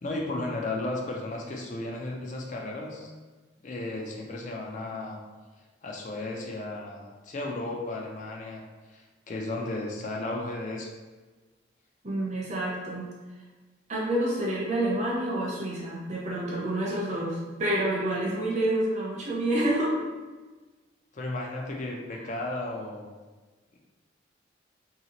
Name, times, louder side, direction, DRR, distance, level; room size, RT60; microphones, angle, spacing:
voice 1, 0.0-3.1 3.6-5.2 5.8-8.6 8.9-10.9 21.1-23.1, left 2 dB, 40° left, -1 dB, 0.4 m, -34 dB
voice 2, 12.0-13.0 13.9-20.0, right 1 dB, 35° right, -4 dB, 0.6 m, -28 dB
2.8 x 2.8 x 2.9 m, 1.3 s
head